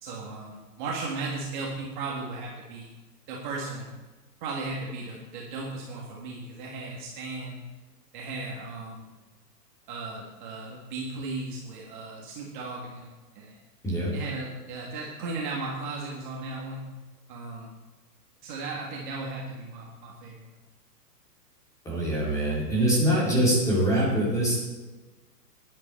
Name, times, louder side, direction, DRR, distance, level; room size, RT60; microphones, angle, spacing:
voice 1, 0.0-2.9 3.3-3.9 4.4-7.6 8.1-9.1 9.9-13.6 14.1-16.8 17.3-17.7 18.4-20.6, right 3 dB, 30° right, -3 dB, 1.8 m, -36 dB
voice 2, 21.8-24.6, right 1 dB, 5° left, -6 dB, 3.0 m, -24 dB
13.0 x 10.5 x 4.4 m, 1.2 s
hypercardioid pair, 160°, 49 cm